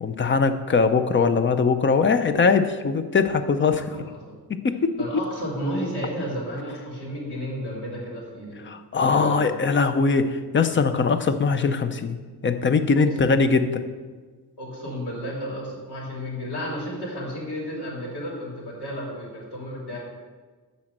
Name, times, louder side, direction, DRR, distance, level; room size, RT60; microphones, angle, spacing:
voice 1, 0.0-4.1 4.5-5.0 8.7-12.2 12.4-13.8, left 4 dB, 30° left, 9 dB, 0.5 m, -21 dB
voice 2, 3.6-4.3 5.0-8.6 9.1-9.4 12.9-13.3 14.6-20.0, equal, 75° left, -3 dB, 3.2 m, -32 dB
12.0 x 4.2 x 7.8 m, 1.4 s
wide cardioid pair, 180°, 40 cm